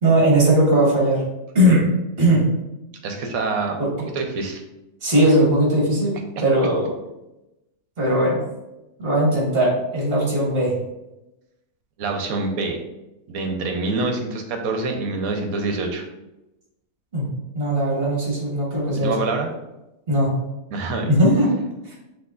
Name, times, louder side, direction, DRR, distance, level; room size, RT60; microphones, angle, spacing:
voice 1, 0.0-1.2 1.5-1.8 2.2-2.4 3.8-4.1 5.0-6.1 6.4-6.9 8.0-8.4 9.0-10.7 17.1-17.3 17.5-19.1 20.1-20.3 21.1-21.5, right 1 dB, 40° right, -4 dB, 1.7 m, -18 dB
voice 2, 3.0-3.8 4.1-4.6 12.0-12.8 13.3-16.1 19.0-19.5 20.7-21.1, right 3 dB, 75° right, 3 dB, 1.1 m, -25 dB
6.1 x 3.0 x 2.5 m, 0.96 s
omnidirectional pair, 1.6 m